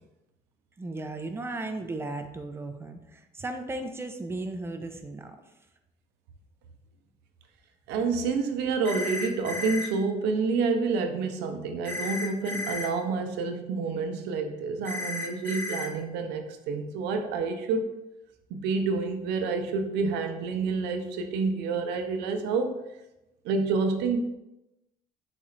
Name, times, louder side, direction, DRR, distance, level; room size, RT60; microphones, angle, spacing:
voice 1, 0.8-5.4, right 2 dB, 15° right, 6 dB, 0.4 m, -36 dB
voice 2, 7.9-17.9 18.5-22.8 23.4-24.2, right 4 dB, 90° right, 5 dB, 0.5 m, -28 dB
sound 1, 8.8-9.9 11.8-12.9 14.8-15.9, left 3 dB, 15° left, 1.0 m, -33 dB
4.1 x 2.4 x 4.3 m, 0.93 s
cardioid pair, 110°, 17 cm